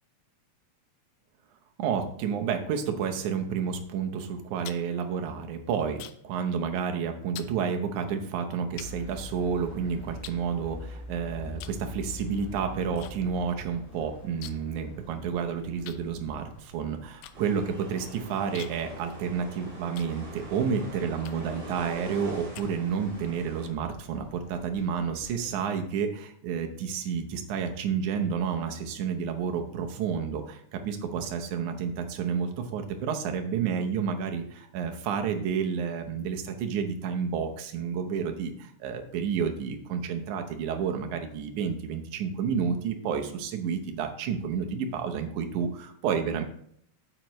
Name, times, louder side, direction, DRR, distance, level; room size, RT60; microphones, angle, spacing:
voice 1, 1.8-46.4, right 6 dB, 80° right, 4 dB, 2.4 m, -30 dB
sound 1, 4.4-6.4 6.7-7.0 7.3-7.6 8.2-8.3 8.8-9.7 10.2-11.1 11.5-11.9 12.1-13.1 13.4-13.5 13.8-14.8 15.1-15.2 15.8-20.6 21.2-21.6 22.1-23.2, left 12 dB, 80° left, 1.9 m, -47 dB
sound 2, 8.7-25.5, left 2 dB, 60° left, 3.1 m, -47 dB
sound 3, 17.3-23.7, right 2 dB, 40° right, 4.6 m, -44 dB
9.0 x 7.6 x 3.1 m, 0.66 s
omnidirectional pair, 3.4 m